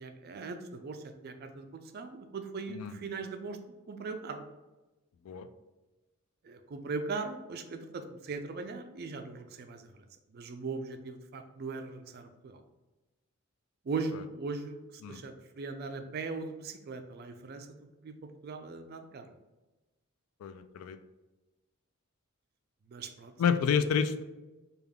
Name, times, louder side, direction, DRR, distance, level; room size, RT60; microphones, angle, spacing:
voice 1, 0.0-3.6 3.9-4.4 6.4-12.6 13.8-17.8 18.0-18.2 18.4-19.3 22.9-23.3, right 4 dB, 45° right, 7 dB, 0.3 m, -39 dB
voice 2, 2.7-3.0 5.2-5.5 15.0-15.2 20.4-21.0 23.4-24.2, left 7 dB, 80° left, 12 dB, 0.3 m, -29 dB
3.4 x 2.3 x 3.4 m, 1.1 s
head